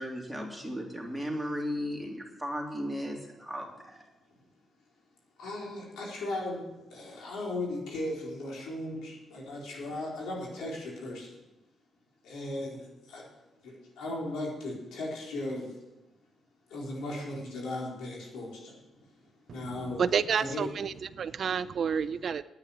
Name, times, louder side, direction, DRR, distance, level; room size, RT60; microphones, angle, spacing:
voice 1, 0.0-4.0, equal, ahead, 0 dB, 3.1 m, -36 dB
voice 2, 5.4-6.6 6.9-11.4 12.2-13.3 13.6-15.8 16.7-18.7 19.5-20.0 20.3-20.7 21.3-21.4, left 1 dB, 85° left, -3 dB, 4.3 m, -37 dB
voice 3, 20.0-22.4, right 7 dB, 55° right, 16 dB, 0.5 m, -29 dB
9.7 x 9.1 x 8.8 m, 1.0 s
cardioid pair, 90°, 0 cm